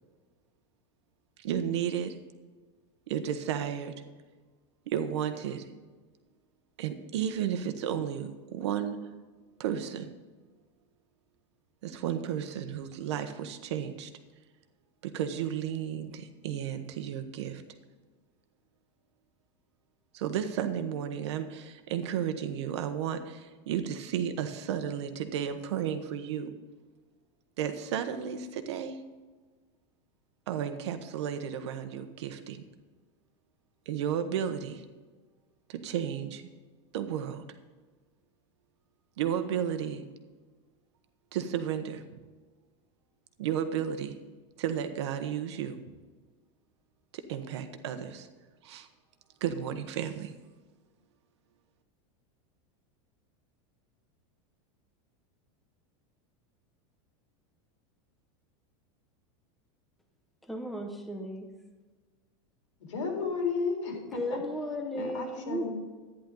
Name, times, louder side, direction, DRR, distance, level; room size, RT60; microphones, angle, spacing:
voice 1, 1.4-2.2 3.1-3.9 4.9-5.6 6.8-9.0 9.6-10.1 11.8-14.1 15.0-17.6 20.1-26.5 27.6-29.0 30.5-32.6 33.9-34.8 35.7-36.5 36.9-37.4 39.2-40.1 41.3-42.0 43.4-44.1 44.6-45.8 47.1-48.3 48.6-48.9 49.4-50.3, right 9 dB, 65° right, 1.2 m, -33 dB
voice 2, 60.4-61.5 63.9-65.7, equal, ahead, 0.7 m, -35 dB
voice 3, 62.9-64.4 64.9-65.7, left 4 dB, 85° left, 3.9 m, -33 dB
12.0 x 10.0 x 3.9 m
supercardioid pair, 180°, 15 cm